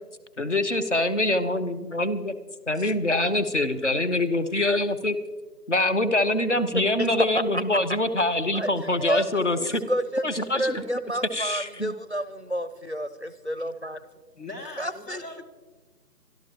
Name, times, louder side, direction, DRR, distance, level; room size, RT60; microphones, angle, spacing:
voice 1, 0.4-2.3 2.7-5.2 5.7-9.8 10.2-11.0 11.3-11.9, left 1 dB, 45° left, 10 dB, 0.8 m, -25 dB
voice 2, 3.3-3.8 6.7-7.8 8.5-14.0 14.8-15.4, equal, 45° right, 14 dB, 0.5 m, -30 dB
voice 3, 14.4-15.4, left 2 dB, 70° left, 3 dB, 2.6 m, -40 dB
24.0 x 12.5 x 3.0 m, 1.3 s
figure-of-eight pair, 175°, 49 cm